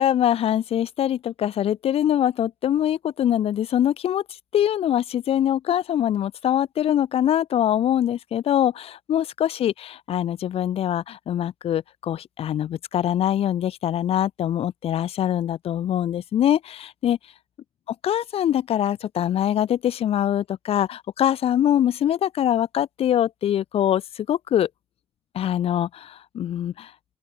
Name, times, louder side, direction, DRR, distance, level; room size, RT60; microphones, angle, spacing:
voice 1, 0.0-4.2 4.5-17.2 18.0-24.7 25.3-26.9, left 10 dB, 85° left, 2.6 m, -23 dB
open air
cardioid pair, 75°, 10 cm